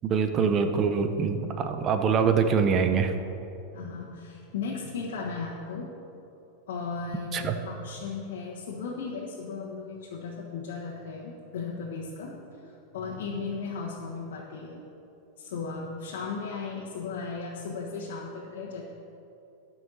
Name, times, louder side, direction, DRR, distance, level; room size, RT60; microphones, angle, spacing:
voice 1, 0.0-3.1 7.3-7.5, right 6 dB, 25° right, 7 dB, 0.6 m, -24 dB
voice 2, 3.7-5.9 6.7-14.8 15.4-18.8, left 4 dB, 85° left, -4 dB, 1.3 m, -36 dB
12.5 x 5.6 x 6.3 m, 2.9 s
supercardioid pair, 165°, 0 cm